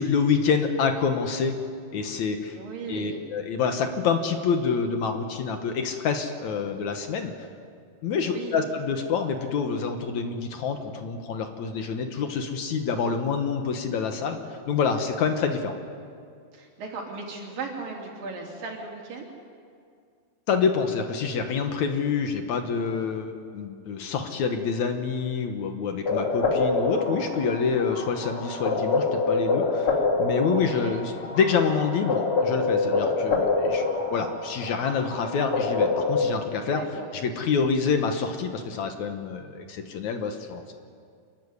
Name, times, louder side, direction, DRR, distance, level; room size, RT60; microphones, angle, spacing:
voice 1, 0.0-1.6 1.9-2.6 2.9-7.3 8.0-15.8 20.5-33.8 34.1-36.8 37.2-40.7, left 5 dB, 65° left, 6 dB, 2.4 m, -27 dB
voice 2, 2.5-3.2 8.2-8.6 16.5-19.3 30.6-31.0 36.7-37.1, right 4 dB, 75° right, 0 dB, 4.7 m, -37 dB
sound 1, 26.1-36.4, left 3 dB, 40° left, 3.3 m, -26 dB
26.0 x 15.0 x 9.8 m, 2.2 s
omnidirectional pair, 3.9 m